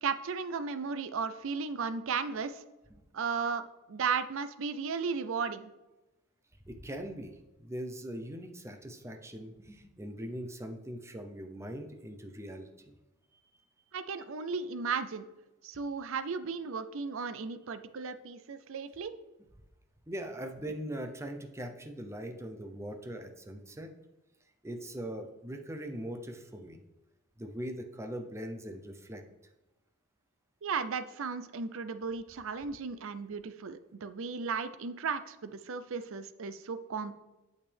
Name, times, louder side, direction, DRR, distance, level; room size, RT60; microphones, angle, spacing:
voice 1, 0.0-2.6 3.1-5.7 13.9-15.3 15.6-19.1 30.6-37.1, right 5 dB, 65° right, 12 dB, 0.5 m, -35 dB
voice 2, 6.7-12.9 20.1-23.9 24.6-26.8 27.4-29.2, right 1 dB, 15° right, 5 dB, 0.7 m, -41 dB
8.7 x 6.6 x 3.4 m, 1.0 s
head